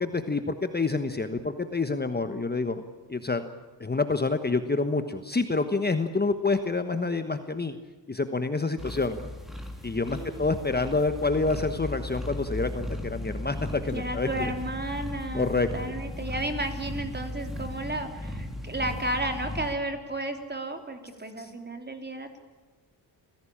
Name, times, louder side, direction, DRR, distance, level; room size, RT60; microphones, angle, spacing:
voice 1, 0.0-2.8 3.1-3.4 3.8-7.8 8.1-9.3 9.8-14.5 15.3-15.7 21.4-21.5, left 3 dB, 20° left, 9 dB, 1.3 m, -27 dB
sound 1, 8.8-19.7, left 1 dB, ahead, 3.7 m, -36 dB
voice 2, 10.1-10.6 13.9-22.4, right 1 dB, 25° right, 6 dB, 3.5 m, -33 dB
27.5 x 16.5 x 8.8 m, 1.3 s
cardioid pair, 100°, 43 cm